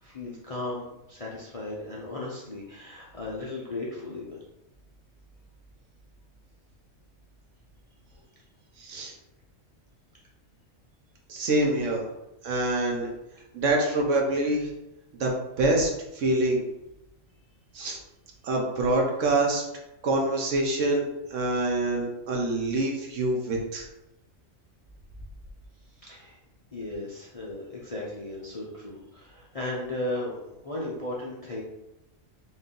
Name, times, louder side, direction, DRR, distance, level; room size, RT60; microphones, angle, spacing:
voice 1, 0.0-4.4 26.0-26.4 26.7-31.6, left 2 dB, 40° left, -5 dB, 0.5 m, -36 dB
voice 2, 8.8-9.1 11.3-12.1 12.4-13.1 13.5-14.7 15.2-16.6 17.7-18.0 18.4-19.6 20.0-23.8, right 2 dB, 70° right, 0 dB, 1.2 m, -26 dB
4.0 x 2.7 x 3.7 m, 0.91 s
omnidirectional pair, 1.4 m